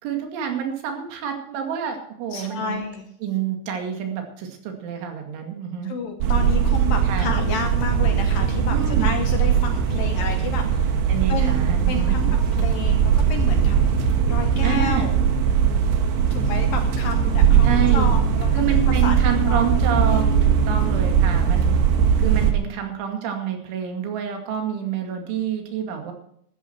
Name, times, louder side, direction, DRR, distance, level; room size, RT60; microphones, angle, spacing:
voice 1, 0.0-2.8 3.2-5.9 7.0-7.3 8.7-9.2 11.1-12.2 14.6-15.2 17.6-18.1 18.5-21.8 22.2-26.1, right 8 dB, 85° right, 4 dB, 4.7 m, -28 dB
voice 2, 2.3-3.1 5.8-11.0 11.3-13.9 14.3-15.1 16.3-19.2 19.4-19.7, left 5 dB, 70° left, 5 dB, 2.3 m, -31 dB
sound 1, 6.2-22.5, right 7 dB, 65° right, 3.2 m, -20 dB
14.5 x 13.5 x 4.6 m, 0.68 s
omnidirectional pair, 5.4 m